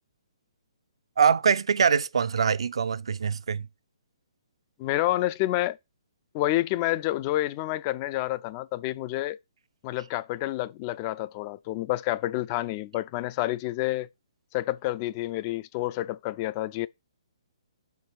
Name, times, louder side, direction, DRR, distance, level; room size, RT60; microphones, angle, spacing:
voice 1, 1.2-3.7, right 6 dB, 65° right, 0.5 m, -23 dB
voice 2, 4.8-5.8 6.3-9.4 9.8-14.1 14.5-16.9, left 16 dB, 30° left, 0.4 m, -29 dB
4.7 x 4.6 x 6.0 m
figure-of-eight pair, 135°, 3 cm